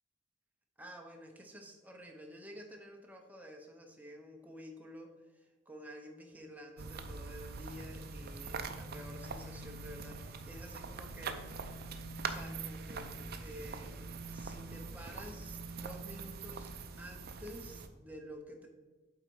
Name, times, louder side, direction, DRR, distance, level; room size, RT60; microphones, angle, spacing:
voice 1, 0.8-11.5 12.2-13.9 14.3-18.7, equal, 10° right, 2 dB, 0.8 m, -50 dB
sound 1, 6.8-17.9, right 4 dB, 45° right, 0.5 m, -43 dB
8.0 x 4.0 x 4.6 m, 1.3 s
head